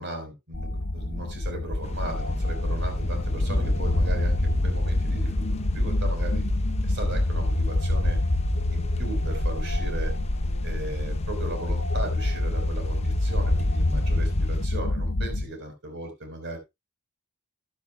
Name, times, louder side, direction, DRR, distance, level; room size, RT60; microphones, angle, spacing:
voice 1, 0.0-6.4 6.8-8.2 8.7-10.1 10.6-16.6, right 1 dB, 55° right, 5 dB, 4.3 m, -37 dB
sound 1, 0.5-15.4, left 1 dB, 60° left, 1.3 m, -26 dB
sound 2, 1.8-14.7, left 2 dB, 30° left, 0.7 m, -39 dB
sound 3, 2.0-10.3, left 2 dB, 10° right, 7.0 m, -38 dB
14.0 x 9.8 x 2.2 m, 0.21 s
head